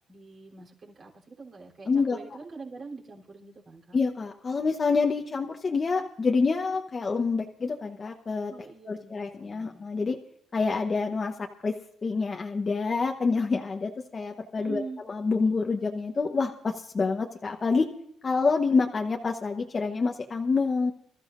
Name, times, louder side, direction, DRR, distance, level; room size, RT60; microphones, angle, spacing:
voice 1, 0.1-4.0 8.5-9.9 14.6-15.0, right 4 dB, 45° right, -1 dB, 3.7 m, -44 dB
voice 2, 1.9-2.2 3.9-8.5 8.9-10.2 10.5-11.3 11.6-11.7 12.0-17.9 18.2-20.9, left 4 dB, 30° left, 2 dB, 1.0 m, -27 dB
25.5 x 13.5 x 2.6 m, 0.74 s
cardioid pair, 105°, 0 cm